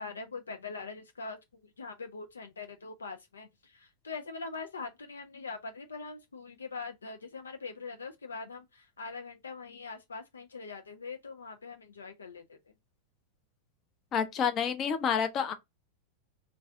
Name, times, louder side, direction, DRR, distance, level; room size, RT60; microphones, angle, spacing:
voice 1, 0.0-12.6, left 4 dB, 70° left, 0.5 m, -42 dB
voice 2, 14.1-15.5, left 7 dB, 30° left, 0.6 m, -29 dB
3.2 x 2.6 x 3.3 m
figure-of-eight pair, 90°, 0 cm